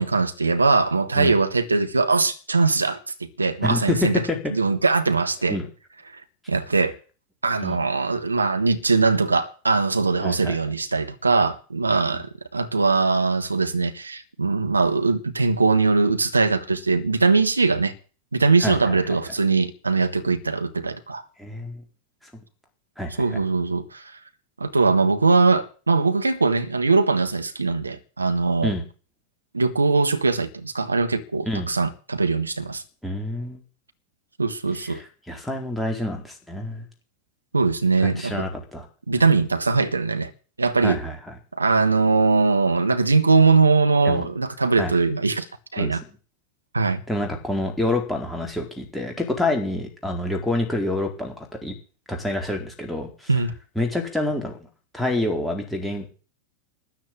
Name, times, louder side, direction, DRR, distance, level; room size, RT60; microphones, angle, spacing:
voice 1, 0.0-4.2 4.5-5.6 6.5-7.0 7.4-17.9 18.3-21.2 23.2-24.0 24.6-28.7 29.5-32.8 34.4-35.0 37.5-38.5 39.1-40.3 40.6-41.0 41.6-45.5 45.7-46.0 46.7-47.0 53.3-53.5, right 4 dB, 80° right, 1.4 m, -21 dB
voice 2, 3.6-4.5 5.5-5.7 7.6-7.8 10.2-10.5 12.1-12.2 18.6-19.0 21.4-21.8 23.0-23.2 28.6-28.8 31.5-31.7 33.0-33.6 34.9-36.8 38.0-38.9 40.8-41.2 44.0-44.3 44.8-44.9 45.8-46.0 47.1-51.7 52.1-53.4 53.8-54.6 54.9-56.0, left 1 dB, ahead, 4.3 m, -27 dB
13.5 x 9.0 x 8.9 m
figure-of-eight pair, 90°, 0 cm